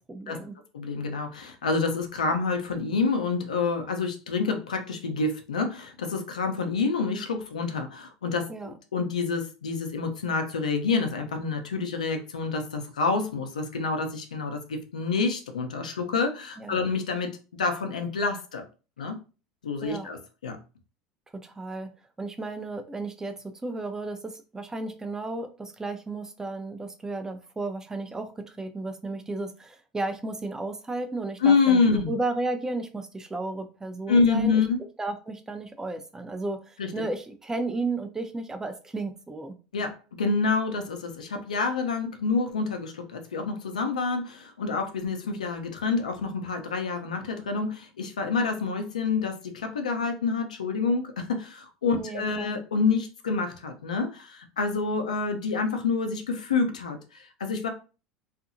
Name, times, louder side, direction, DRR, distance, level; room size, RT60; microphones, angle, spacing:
voice 1, 0.1-0.6 8.5-8.7 16.6-16.9 19.8-20.1 21.3-21.9 22.2-34.6 35.0-39.6 51.9-52.6, right 2 dB, 15° right, 7 dB, 0.5 m, -33 dB
voice 2, 0.7-18.6 19.0-19.1 19.6-20.2 20.4-20.6 31.4-32.1 34.1-34.8 36.8-37.0 39.7-57.7, left 4 dB, 90° left, 5 dB, 0.5 m, -27 dB
2.7 x 2.4 x 2.6 m, 0.34 s
hypercardioid pair, 80°, 4 cm